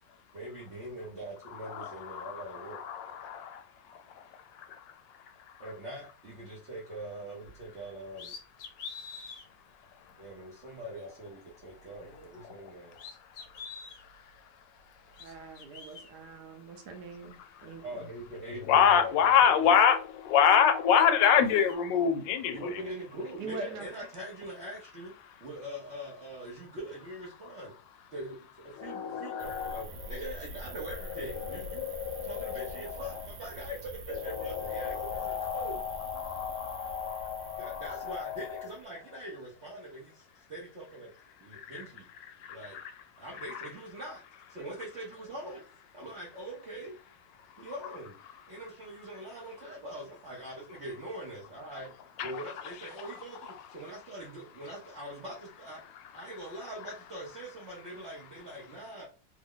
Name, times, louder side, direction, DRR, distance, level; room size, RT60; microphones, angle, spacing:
voice 1, 0.3-2.8 5.6-8.3 10.2-13.0 17.8-19.8 22.5-25.1 25.4-27.7 28.1-28.3 28.6-31.9 32.2-35.8 37.6-41.1 41.4-42.1 42.5-42.8 43.2-44.2 44.5-45.6 45.9-46.9 47.6-48.1 48.5-51.9 52.2-55.8 56.1-59.0, right 1 dB, 50° right, -4 dB, 0.9 m, -42 dB
voice 2, 1.7-3.6 18.7-22.6 28.8-29.8 31.4-33.0 34.4-38.4 41.7-41.8 42.7-42.9 52.2-52.4, left 8 dB, 90° left, 8 dB, 1.3 m, -27 dB
sound 1, 7.4-7.6 8.1-9.5 10.1-10.2 11.9-12.7 12.9-14.0 14.9-16.1 17.2-17.3 17.7-19.4 19.8-20.6 20.9-21.8, left 5 dB, 70° left, 1.2 m, -47 dB
voice 3, 15.2-18.1 23.4-23.9, right 3 dB, 70° right, 4 dB, 1.3 m, -43 dB
sound 2, 29.4-38.8, right 2 dB, 90° right, 1.4 m, -45 dB
3.4 x 2.0 x 3.6 m, 0.35 s
omnidirectional pair, 1.9 m